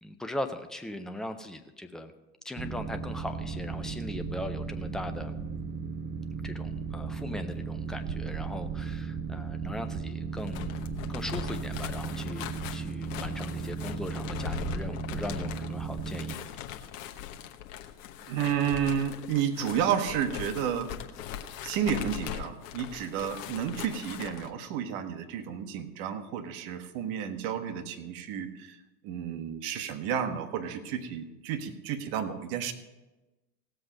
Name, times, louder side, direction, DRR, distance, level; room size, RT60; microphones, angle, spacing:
voice 1, 0.0-2.1 2.4-5.3 6.4-10.7 11.1-16.4, left 1 dB, ahead, 7 dB, 0.4 m, -39 dB
Boat Water vehicle, 2.6-16.4, right 5 dB, 20° right, 0.9 m, -36 dB
sound 1, 10.3-24.5, left 10 dB, 50° left, 1.2 m, -40 dB
voice 2, 18.2-20.9 21.6-32.7, right 8 dB, 45° right, 8 dB, 1.5 m, -31 dB
17.0 x 7.7 x 5.2 m, 1.1 s
figure-of-eight pair, 90°, 49 cm